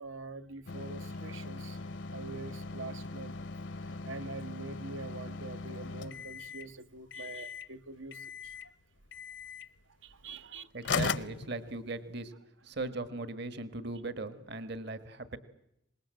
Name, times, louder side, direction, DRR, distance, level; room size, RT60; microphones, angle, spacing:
voice 1, 0.0-1.8 2.1-3.4 3.8-8.7 10.0-11.0, right 3 dB, 80° right, 10 dB, 1.4 m, -45 dB
sound 1, 0.7-6.7 7.1-7.7 8.1-8.7 9.1-9.7 10.5-10.6 10.8-12.2, left 4 dB, 65° left, 0.8 m, -39 dB
voice 2, 10.7-12.3 12.6-15.4, right 2 dB, 55° right, 12 dB, 1.6 m, -38 dB
25.0 x 21.0 x 7.7 m, 0.79 s
head